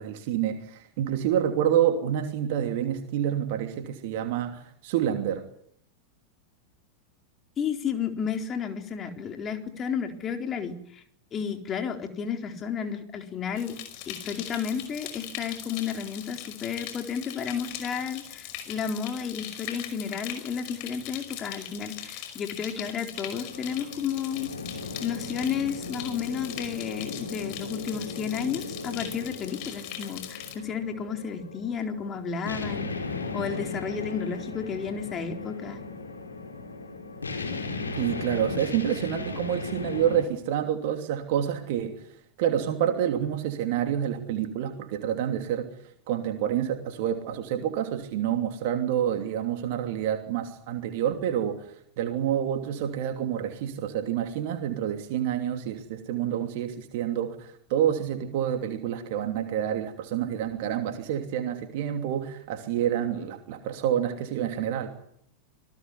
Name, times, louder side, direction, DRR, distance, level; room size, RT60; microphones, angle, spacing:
voice 1, 0.0-5.4 38.0-42.0 42.4-45.7 46.1-64.9, right 10 dB, 50° right, 6 dB, 2.8 m, -28 dB
voice 2, 7.6-11.0 11.3-13.8 14.1-24.5 25.0-35.8, left 7 dB, 25° left, 5 dB, 4.1 m, -32 dB
sound 1, 13.5-30.5, left 11 dB, 45° left, 5.4 m, -41 dB
sound 2, 23.1-40.2, left 3 dB, 75° left, 4.8 m, -37 dB
27.0 x 19.0 x 9.7 m, 0.70 s
figure-of-eight pair, 90°, 0 cm